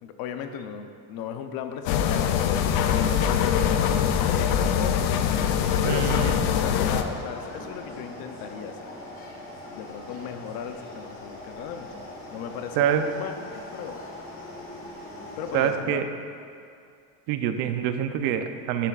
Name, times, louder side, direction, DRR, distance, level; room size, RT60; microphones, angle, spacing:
voice 1, 0.0-5.2 5.8-8.9 9.7-11.9 12.3-14.0 15.4-16.0, left 7 dB, 60° left, 6 dB, 0.8 m, -36 dB
sound 1, 1.9-7.0, left 8 dB, 90° left, 0.7 m, -23 dB
sound 2, 5.7-15.7, left 1 dB, 30° left, 1.8 m, -41 dB
voice 2, 5.8-6.4 12.8-13.0 15.5-16.0 17.3-18.9, right 10 dB, 70° right, 7 dB, 0.8 m, -25 dB
11.5 x 10.0 x 2.5 m, 2.4 s
cardioid pair, 150°, 42 cm